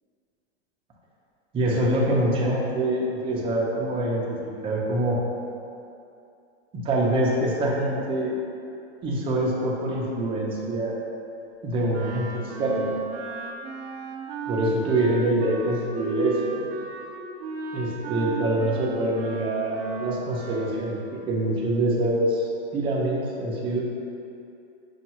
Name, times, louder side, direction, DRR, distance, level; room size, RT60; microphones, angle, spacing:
voice 1, 1.5-4.4 4.6-5.2 6.7-8.4 9.0-10.9 11.6-12.3 12.6-12.9 14.5-16.7 17.7-23.8, right 1 dB, 15° right, -4 dB, 0.4 m, -25 dB
Wind instrument woodwind instrument, 11.9-20.9, right 4 dB, 60° right, 0.6 m, -35 dB
5.3 x 2.3 x 2.9 m, 2.6 s
supercardioid pair, 135°, 34 cm